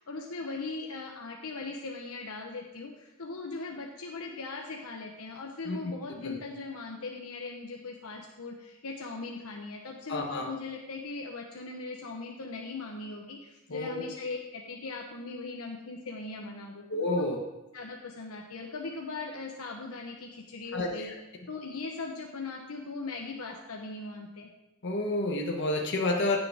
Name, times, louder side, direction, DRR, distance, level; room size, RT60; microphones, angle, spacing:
voice 1, 0.0-16.8 17.2-17.3 17.7-21.1 21.5-24.5, left 3 dB, 90° left, 1 dB, 1.0 m, -39 dB
voice 2, 10.1-10.5 13.7-14.0 16.9-17.4 20.7-21.1 24.8-26.4, left 2 dB, 55° left, 1 dB, 1.2 m, -30 dB
16.0 x 6.7 x 3.6 m, 0.98 s
head